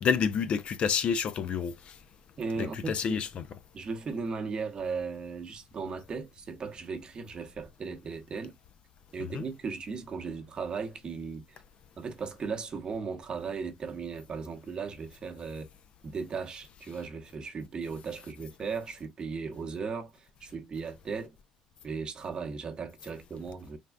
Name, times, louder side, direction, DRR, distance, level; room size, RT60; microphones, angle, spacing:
voice 1, 0.0-1.9 2.6-3.4 9.3-9.4, left 7 dB, 50° left, 0.3 m, -29 dB
voice 2, 2.4-3.2 3.7-8.6 9.1-11.6 12.0-15.7 16.0-21.4 21.8-23.8, right 5 dB, 35° right, 0.8 m, -37 dB
3.4 x 2.3 x 2.2 m
hypercardioid pair, 75°, 3 cm